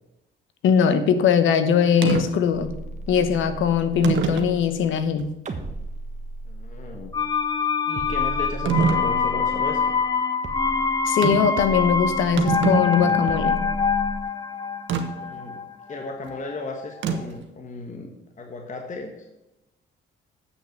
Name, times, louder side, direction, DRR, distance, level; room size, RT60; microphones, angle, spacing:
voice 1, 0.6-2.7 3.1-5.3 11.1-13.6, left 7 dB, 80° left, 10 dB, 1.1 m, -21 dB
sound 1, 2.0-2.3 3.2-3.3 4.0-4.6 5.2-5.3 8.7-9.1 11.2-11.6 11.9-12.0 12.2-13.3 14.9-15.1 17.0-17.4, right 6 dB, 75° right, 1.2 m, -24 dB
sound 2, 2.5-5.1 5.5-7.6 8.0-10.2 10.4-11.1 11.6-12.8 13.3-14.2, right 2 dB, 35° right, 1.5 m, -36 dB
voice 2, 6.4-7.1 7.8-10.0 15.1-15.6 15.9-19.3, left 3 dB, 40° left, 2 dB, 1.4 m, -35 dB
sound 3, 7.1-16.9 17.1-17.2, left 5 dB, 20° left, 0.8 m, -25 dB
7.9 x 6.3 x 7.6 m, 0.93 s
cardioid pair, 90°, 20 cm